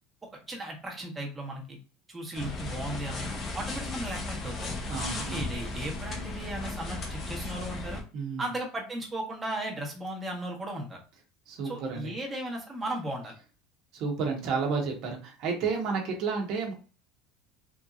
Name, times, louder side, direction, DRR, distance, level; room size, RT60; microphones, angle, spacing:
voice 1, 0.2-1.8 2.1-4.7 5.3-8.0 8.4-11.0 11.6-13.3, right 1 dB, 15° right, -1 dB, 1.2 m, -36 dB
sound 1, 2.3-8.0, left 2 dB, 35° left, 0.8 m, -36 dB
voice 2, 4.9-5.5 8.1-8.5 11.5-12.1 13.9-16.7, right 5 dB, 55° right, 1 dB, 1.1 m, -31 dB
3.6 x 2.8 x 2.5 m, 0.36 s
supercardioid pair, 125°, 0 cm